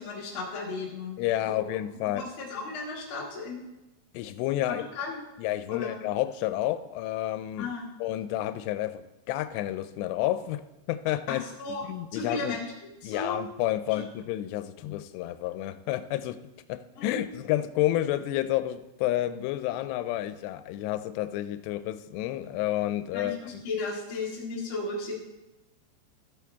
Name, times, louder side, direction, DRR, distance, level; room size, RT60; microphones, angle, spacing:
voice 1, 0.0-1.6 2.1-3.6 4.6-5.2 5.7-6.0 7.6-7.9 11.3-11.8 12.1-13.4 13.9-14.0 17.0-17.2 23.1-25.1, left 3 dB, 50° left, -4 dB, 1.6 m, -35 dB
voice 2, 1.2-2.3 4.1-4.8 5.4-7.7 8.0-10.6 10.9-11.4 11.8-12.6 13.0-16.4 16.7-23.4, left 14 dB, 85° left, 12 dB, 2.7 m, -30 dB
14.0 x 8.4 x 3.5 m, 0.99 s
omnidirectional pair, 4.8 m